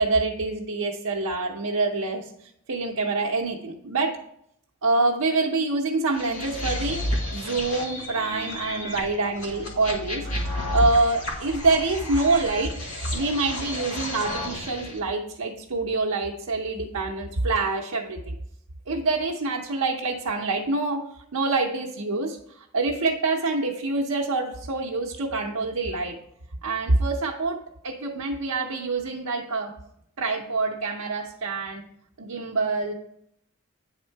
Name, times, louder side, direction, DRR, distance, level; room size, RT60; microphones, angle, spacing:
voice 1, 0.0-2.3 2.7-4.2 4.8-7.0 7.3-10.3 10.7-12.7 13.1-18.3 18.9-21.0 21.3-22.4 22.7-26.1 26.6-27.6 27.8-29.7 30.2-31.8 32.2-32.9, right 3 dB, 85° right, -1 dB, 0.7 m, -26 dB
sound 1, 6.2-15.0, left 1 dB, 80° left, 1.5 m, -32 dB
8.8 x 3.6 x 4.5 m, 0.75 s
head